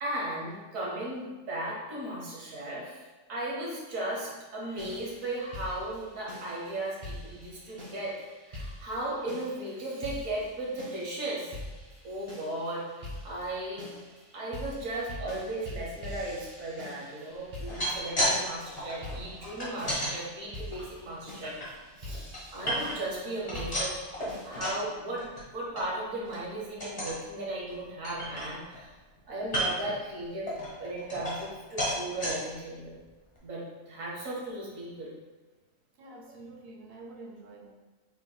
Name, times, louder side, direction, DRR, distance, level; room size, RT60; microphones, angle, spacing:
voice 1, 0.0-8.1 8.4-11.5 12.0-13.9 14.3-21.6 22.0-23.9 24.4-25.3 25.5-28.9 29.3-30.5 30.8-32.9 33.4-35.1, right 1 dB, 70° right, -4 dB, 1.5 m, -36 dB
sound 1, 4.8-24.5, left 1 dB, 35° right, 1.8 m, -45 dB
sound 2, 17.5-18.4 18.6-20.1 20.7-21.7 22.1-23.1 23.4-24.8 25.2-25.4 25.8-25.9 26.2-26.5 26.8-27.2 27.7-27.8 28.0-28.9 29.4-29.9 30.5-31.5 31.8-32.3 32.9-33.0 33.4-33.5, equal, 30° left, 1.3 m, -33 dB
voice 2, 36.0-37.7, right 2 dB, 55° right, 0 dB, 0.7 m, -47 dB
5.7 x 3.9 x 2.2 m, 1.2 s
omnidirectional pair, 1.4 m